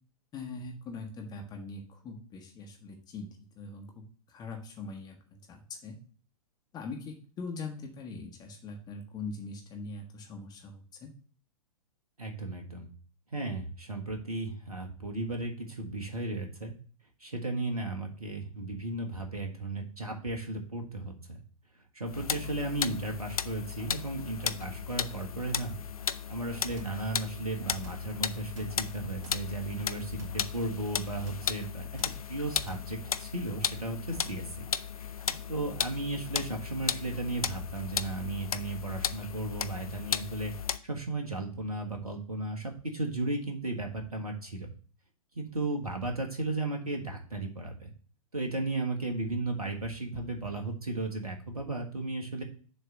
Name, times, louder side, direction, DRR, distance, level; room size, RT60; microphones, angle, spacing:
voice 1, 0.3-6.0 6.7-11.1 36.3-36.4, left 3 dB, 20° left, 2 dB, 1.3 m, -42 dB
voice 2, 12.2-12.9 13.3-16.7 17.2-21.4 21.9-25.8 26.3-31.9 32.3-34.6 35.5-40.5 40.8-44.7 45.3-47.9 48.3-52.4, right 2 dB, 85° right, 3 dB, 1.4 m, -35 dB
sound 1, 22.1-40.8, left 7 dB, 75° left, 0.5 m, -35 dB
sound 2, 26.7-27.1 27.7-28.1 28.5-29.5 30.1-30.5 31.2-31.6 32.0-32.3 32.6-33.0 34.1-34.5 35.3-35.6, right 1 dB, 50° right, 2.7 m, -46 dB
7.0 x 3.3 x 6.2 m, 0.42 s
figure-of-eight pair, 110°, 18 cm